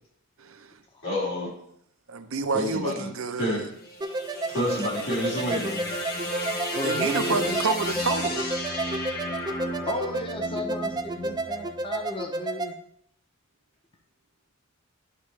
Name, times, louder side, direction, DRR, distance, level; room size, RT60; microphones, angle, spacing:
voice 1, 0.4-0.8 2.1-3.7 6.8-8.5, right 4 dB, 80° right, 8 dB, 0.7 m, -29 dB
voice 2, 1.0-1.5 2.5-3.1 3.4-3.6 4.5-5.9, left 1 dB, 85° left, -5 dB, 3.4 m, -28 dB
sound 1, 3.7-12.0, left 1 dB, 50° left, 1.5 m, -33 dB
sound 2, 4.0-12.7, right 2 dB, 20° right, 0.4 m, -32 dB
voice 3, 6.7-7.6 9.9-12.7, left 1 dB, 25° left, 3 dB, 0.7 m, -33 dB
11.0 x 6.0 x 3.2 m, 0.69 s
head